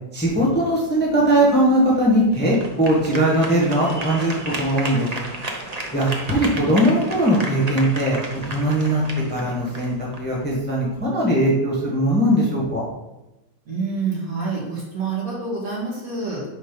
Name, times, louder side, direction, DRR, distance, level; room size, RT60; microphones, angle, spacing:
voice 1, 0.1-5.1 5.9-9.0 9.3-12.8, right 1 dB, 5° left, -6 dB, 1.2 m, -20 dB
sound 1, 0.9-11.0, right 2 dB, 65° right, 0.4 m, -34 dB
voice 2, 13.7-16.4, right 4 dB, 50° right, -5 dB, 2.1 m, -27 dB
5.0 x 4.2 x 5.3 m, 0.96 s
omnidirectional pair, 2.0 m